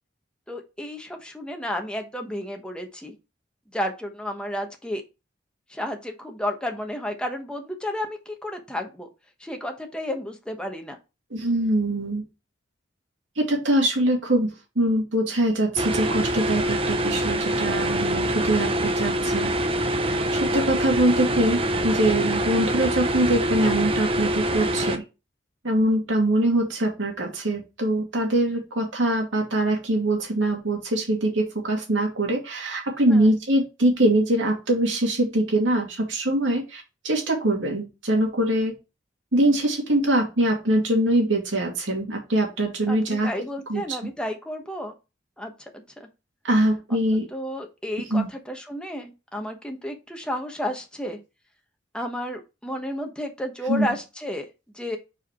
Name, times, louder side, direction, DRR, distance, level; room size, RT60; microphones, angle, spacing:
voice 1, 0.5-3.1 3.7-5.0 5.7-9.1 9.4-11.0 33.1-33.3 42.9-44.9 45.4-46.1 46.9-47.0 47.3-51.2 51.9-54.4 54.7-55.0, left 1 dB, 5° left, 3 dB, 1.2 m, -32 dB
voice 2, 11.3-12.2 13.4-19.5 20.3-25.0 25.6-38.8 39.3-43.3 43.7-43.8 46.4-47.3 48.1-48.3 53.7-53.9, right 1 dB, 85° right, 1 dB, 2.3 m, -23 dB
sound 1, 15.8-25.0, right 1 dB, 30° right, 0.7 m, -25 dB
4.8 x 4.8 x 4.3 m, 0.27 s
head